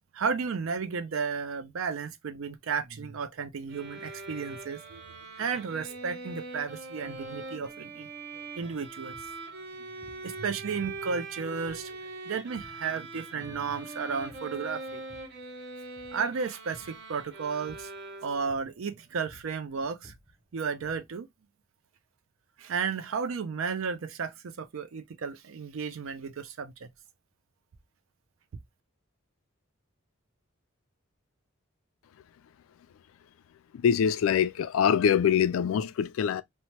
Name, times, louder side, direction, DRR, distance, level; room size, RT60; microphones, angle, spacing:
voice 1, 0.1-5.0 5.4-8.1 8.6-9.2 10.2-12.0 12.3-15.0 16.1-17.9 18.2-20.1 20.5-21.3 22.6-26.9, right 5 dB, 70° right, 0.5 m, -33 dB
sound 1, 3.7-18.6, right 3 dB, 55° right, 0.8 m, -42 dB
sound 2, 9.1-9.4 10.0-10.3 10.8-11.3 11.7-12.1 12.6-12.9 13.2-13.8 14.2-14.6 14.9-15.4 15.9-16.3 16.7-17.0 17.7-18.0 18.5-18.9 19.1-21.2, equal, 15° right, 0.7 m, -55 dB
voice 2, 33.7-36.4, left 8 dB, 75° left, 0.3 m, -24 dB
2.8 x 2.1 x 2.9 m
head